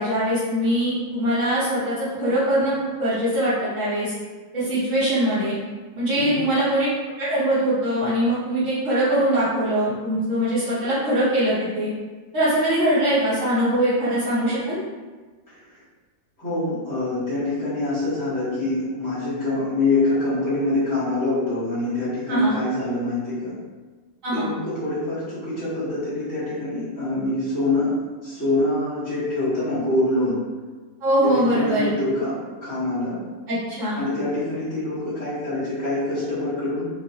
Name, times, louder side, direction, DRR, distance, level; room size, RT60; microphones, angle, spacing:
voice 1, 0.0-4.1 4.5-5.6 6.0-6.9 7.2-11.9 12.3-14.8 22.3-22.6 24.2-24.5 31.0-31.9 33.5-34.1, right 1 dB, 65° right, -12 dB, 1.2 m, -22 dB
voice 2, 6.1-6.5 16.4-23.5 24.3-27.9 28.2-30.4 31.2-33.2 33.9-36.9, left 2 dB, 15° left, -16 dB, 0.9 m, -25 dB
3.1 x 2.3 x 2.7 m, 1.3 s
omnidirectional pair, 1.5 m